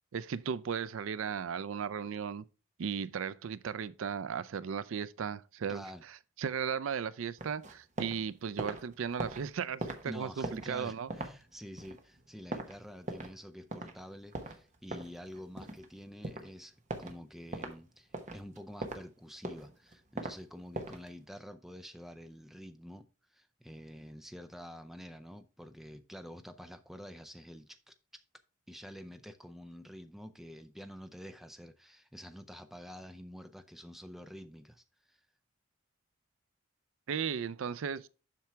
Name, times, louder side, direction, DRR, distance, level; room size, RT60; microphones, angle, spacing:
voice 1, 0.1-2.4 2.8-11.1 37.1-38.1, right 7 dB, 80° right, 0.4 m, -36 dB
voice 2, 5.7-6.0 10.1-28.2 28.7-35.2, equal, ahead, 0.5 m, -48 dB
sound 1, 7.4-8.2 8.5-13.4 13.7-13.9 14.3-15.9 16.2-16.5 16.9-17.2 17.5-17.7 18.1-19.0 19.4-20.4 20.7-21.1, right 2 dB, 35° right, 1.0 m, -40 dB
7.4 x 6.0 x 3.4 m
head